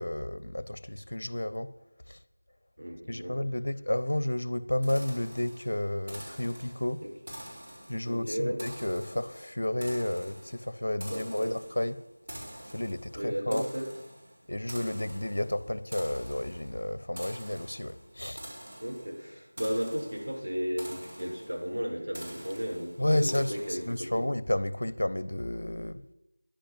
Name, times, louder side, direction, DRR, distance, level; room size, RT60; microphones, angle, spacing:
voice 1, 0.0-1.7 2.1-2.2 3.1-7.0 7.9-12.0 12.6-13.6 14.5-18.4 23.0-26.0, left 1 dB, 60° left, 15 dB, 0.9 m, -31 dB
voice 2, 2.8-3.4 7.0-7.1 8.1-8.6 11.0-11.6 13.2-13.9 18.8-23.8 24.1-24.3, equal, 75° right, 0 dB, 5.2 m, -34 dB
sound 1, 4.8-24.2, equal, 40° right, 4.3 m, -47 dB
10.5 x 10.5 x 7.5 m, 0.88 s
figure-of-eight pair, 170°, 0 cm